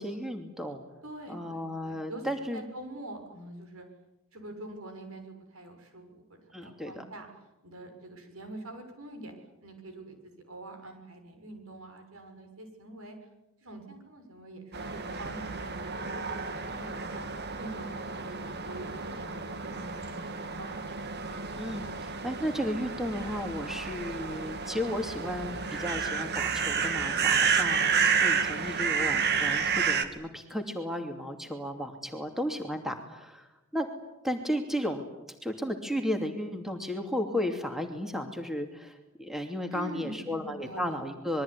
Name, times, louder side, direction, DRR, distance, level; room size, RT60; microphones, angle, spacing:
voice 1, 0.0-0.8 1.3-2.6 6.5-7.0 21.6-33.9 34.2-35.1 35.4-41.4, equal, ahead, 5 dB, 2.7 m, -34 dB
voice 2, 1.0-3.8 4.3-7.3 7.6-9.3 9.6-10.2 10.5-13.1 13.6-17.2 17.6-20.3 20.6-20.8 39.7-41.0, right 1 dB, 70° right, 6 dB, 6.8 m, -45 dB
sound 1, 14.7-30.0, right 6 dB, 50° right, 2.3 m, -30 dB
26.5 x 22.5 x 9.8 m, 0.94 s
head